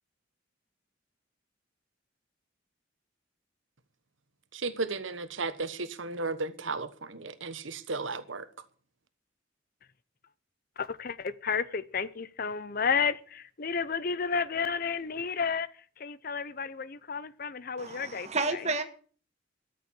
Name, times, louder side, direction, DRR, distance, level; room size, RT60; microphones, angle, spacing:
voice 1, 4.5-8.5, right 3 dB, 85° right, 1.2 m, -34 dB
voice 2, 10.8-15.7 16.0-18.6, left 5 dB, 50° left, 0.7 m, -32 dB
voice 3, 17.8-18.8, right 3 dB, 35° right, 1.7 m, -31 dB
13.0 x 6.8 x 8.5 m
head